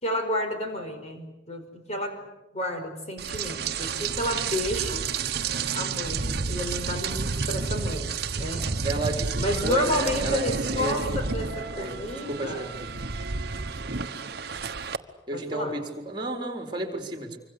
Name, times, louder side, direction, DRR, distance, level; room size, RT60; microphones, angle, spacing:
voice 1, 0.0-2.2 2.5-5.1 5.7-8.7 9.4-12.6 15.3-15.8, left 1 dB, 35° left, 5 dB, 5.2 m, -31 dB
Rain, 3.2-15.0, right 5 dB, 55° right, 1.2 m, -30 dB
voice 2, 8.8-11.2 11.8-12.0 12.3-12.7 15.3-17.4, right 2 dB, 25° right, 4 dB, 4.3 m, -32 dB
26.0 x 25.0 x 8.3 m, 0.98 s
head